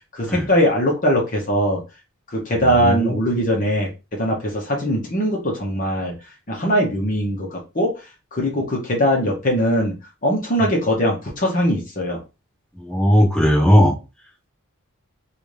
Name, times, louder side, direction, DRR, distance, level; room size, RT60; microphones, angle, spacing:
voice 1, 0.1-1.8 2.3-6.1 6.5-8.0 8.3-9.9 10.2-12.2, equal, 35° left, 0.9 m, -21 dB
voice 2, 2.5-3.2 12.8-13.9, equal, 5° left, 1.1 m, -17 dB
3.9 x 2.5 x 3.2 m
head